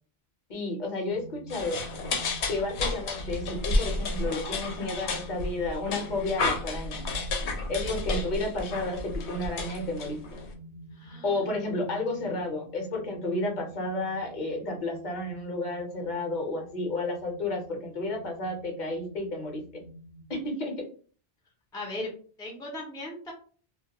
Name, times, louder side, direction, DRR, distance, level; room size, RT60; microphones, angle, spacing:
voice 1, 0.5-1.8 2.5-7.0 7.7-10.2 11.2-19.6 20.3-20.8, left 2 dB, 45° left, 1 dB, 0.8 m, -32 dB
sound 1, 1.1-20.4, right 1 dB, 55° right, 0.9 m, -47 dB
sound 2, 1.5-10.5, left 2 dB, 80° left, 0.9 m, -31 dB
voice 2, 11.0-11.4 21.7-22.1 22.4-23.3, left 1 dB, 5° left, 0 dB, 0.4 m, -37 dB
2.3 x 2.2 x 2.8 m, 0.42 s
omnidirectional pair, 1.1 m